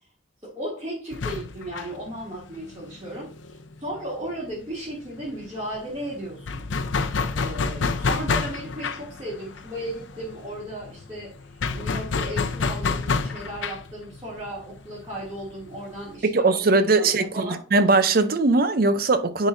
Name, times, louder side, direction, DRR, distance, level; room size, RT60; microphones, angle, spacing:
voice 1, 0.4-6.7 7.4-17.6, right 1 dB, 25° right, 2.4 m, -35 dB
sound 1, 1.1-4.5 4.8-4.9 5.2-16.2, left 4 dB, 90° left, 0.6 m, -29 dB
voice 2, 16.2-19.5, right 3 dB, 50° right, 0.6 m, -20 dB
10.5 x 3.9 x 2.6 m
head